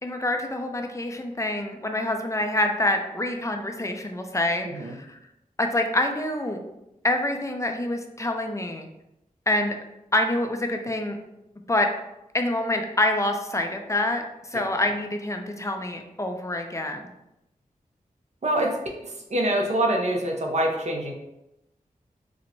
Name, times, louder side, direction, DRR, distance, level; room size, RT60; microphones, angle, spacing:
voice 1, 0.0-5.2 5.6-6.6 7.0-8.9 9.5-9.8 10.1-11.2 11.7-11.9 12.3-14.2 14.5-17.1, left 1 dB, 20° left, 4 dB, 0.4 m, -26 dB
voice 2, 18.4-18.8 19.0-21.1, right 1 dB, 50° right, 1 dB, 0.6 m, -25 dB
4.4 x 2.1 x 2.6 m, 0.89 s
wide cardioid pair, 65°, 15 cm